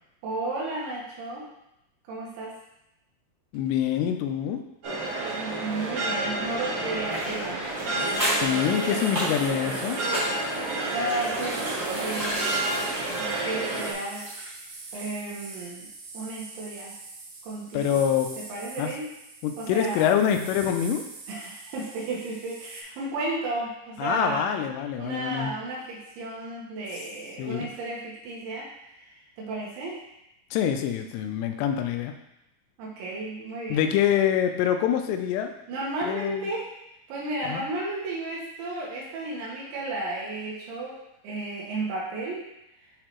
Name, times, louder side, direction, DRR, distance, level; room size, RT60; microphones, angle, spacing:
voice 1, 0.2-1.5 2.1-2.5 5.4-7.6 10.9-11.6 11.9-12.8 13.1-14.3 14.9-15.9 16.1-17.0 17.4-18.0 18.5-19.1 19.6-20.2 21.3-24.7 25.0-29.1 29.4-30.0 32.8-33.8 35.7-36.7 37.1-41.0 41.2-42.4, right 2 dB, 90° right, -5 dB, 3.5 m, -33 dB
voice 2, 3.5-4.6 8.3-10.0 17.7-18.3 18.8-18.9 19.4-21.0 24.0-25.5 27.4-27.7 30.5-32.1 33.7-35.5 36.0-36.5 37.4-37.6, left 9 dB, 80° left, 6 dB, 2.7 m, -25 dB
sound 1, 4.8-13.9, right 2 dB, 55° right, 2.6 m, -30 dB
sound 2, 7.1-14.7 14.9-15.0, equal, 35° right, 0.7 m, -33 dB
sound 3, 8.0-22.8, right 3 dB, 75° right, 2.8 m, -44 dB
8.7 x 4.0 x 3.0 m, 0.85 s
omnidirectional pair, 5.1 m